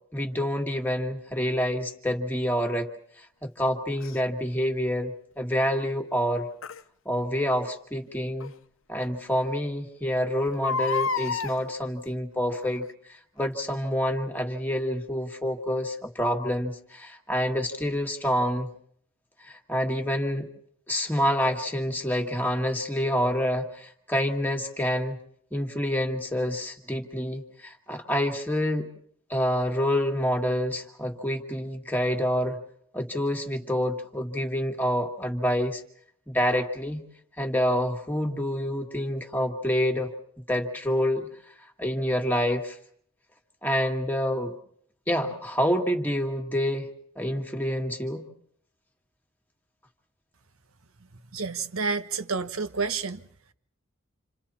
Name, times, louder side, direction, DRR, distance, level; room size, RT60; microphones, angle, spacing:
voice 1, 0.1-2.9 3.4-6.5 7.1-8.5 8.9-12.8 13.4-18.7 19.5-20.5 20.9-25.2 25.5-28.9 29.3-32.6 32.9-35.8 36.3-37.0 37.4-40.1 40.5-41.3 41.8-42.8 43.6-44.5 45.1-46.9 47.2-48.3, equal, 10° left, 2.0 m, -27 dB
Crying sobbing, 4.0-4.2 6.6-6.8 8.4-8.5 9.0-9.1 9.3-9.4 10.5-11.5 12.5-12.8 13.4-13.5, left 4 dB, 75° left, 0.9 m, -29 dB
voice 2, 51.3-53.2, right 4 dB, 90° right, 1.4 m, -29 dB
30.0 x 27.5 x 4.4 m
head